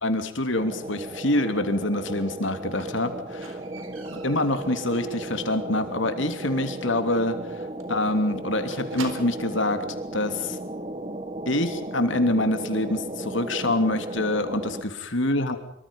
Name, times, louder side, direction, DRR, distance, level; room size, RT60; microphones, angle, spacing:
voice 1, 0.0-3.6 4.2-7.4 7.9-10.6 11.5-15.6, left 1 dB, 65° left, 8 dB, 3.0 m, -26 dB
sound 1, 0.5-14.8, right 1 dB, 30° right, 2.0 m, -35 dB
Squeak, 2.8-5.6 5.9-6.3 6.6-6.7 7.0-7.1 7.4-7.5 7.8-9.6 10.5-10.6, right 3 dB, 80° right, 4.1 m, -44 dB
25.5 x 24.5 x 5.5 m, 0.74 s
head